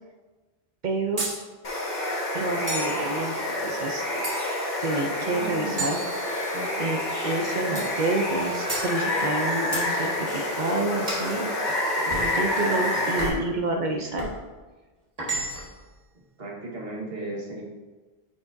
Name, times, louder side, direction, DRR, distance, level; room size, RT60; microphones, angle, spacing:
voice 1, 0.8-1.2 2.3-3.4 3.6-4.0 4.8-6.0 6.8-7.0 7.2-11.5 12.0-14.3, right 2 dB, 50° right, 3 dB, 0.7 m, -28 dB
sound 1, 1.2-1.4 2.7-3.0 4.2-4.7 5.8-6.7 7.8-8.0 8.7-8.9 9.7-9.9 11.1-11.3 12.1-12.3 13.2-13.5 14.2-14.4 15.2-15.8, right 2 dB, 35° right, 1.9 m, -32 dB
Water, 1.6-13.3, left 1 dB, 45° left, 1.4 m, -28 dB
voice 2, 5.2-5.9 6.5-7.3 11.3-11.6 12.7-12.8 13.1-13.3 16.4-17.6, right 1 dB, 70° right, -2 dB, 1.7 m, -37 dB
8.8 x 5.9 x 2.7 m, 1.3 s
omnidirectional pair, 1.1 m